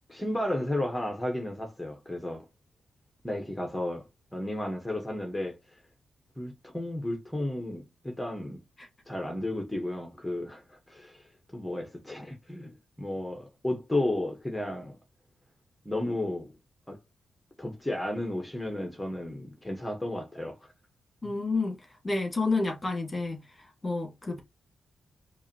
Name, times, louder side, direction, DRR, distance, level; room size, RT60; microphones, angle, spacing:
voice 1, 0.1-2.5 3.2-4.1 4.3-5.6 6.4-8.6 9.1-11.2 11.5-15.0 15.8-16.5 16.9-17.0 17.6-20.7 21.2-21.3, left 1 dB, 10° left, 1.1 m, -33 dB
voice 2, 21.2-21.8 22.0-23.4 23.8-24.4, left 3 dB, 25° left, 1.7 m, -29 dB
4.7 x 2.6 x 2.8 m
cardioid pair, 80°, 0 cm